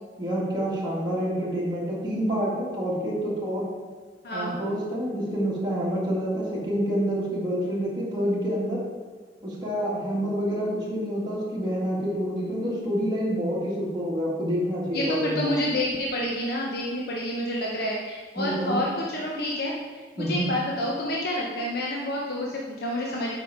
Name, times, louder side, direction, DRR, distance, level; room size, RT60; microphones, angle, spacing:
voice 1, 0.2-3.6 4.3-8.8 9.4-15.6 18.4-18.8 20.2-20.5, equal, 25° right, -6 dB, 2.0 m, -27 dB
voice 2, 4.2-4.5 14.9-19.7 20.2-23.4, left 1 dB, 60° left, -3 dB, 1.0 m, -28 dB
8.0 x 5.6 x 4.8 m, 1.4 s
head